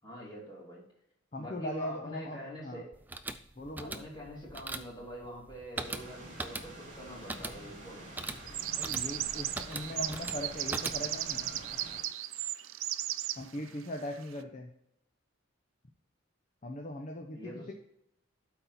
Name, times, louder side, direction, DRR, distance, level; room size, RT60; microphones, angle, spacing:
voice 1, 0.0-0.8 1.4-2.9 3.8-8.1 17.3-17.7, equal, 20° left, -5 dB, 3.0 m, -45 dB
voice 2, 1.3-2.8 3.6-4.0 8.8-11.5 13.4-14.7 16.6-17.7, left 1 dB, 35° left, 3 dB, 0.7 m, -40 dB
sound 1, 2.9-11.3, right 2 dB, 10° right, 0.3 m, -41 dB
sound 2, 5.8-12.0, right 1 dB, 40° right, 3.1 m, -48 dB
sound 3, 8.5-13.4, right 13 dB, 80° right, 0.5 m, -35 dB
12.0 x 4.3 x 4.2 m, 0.77 s
head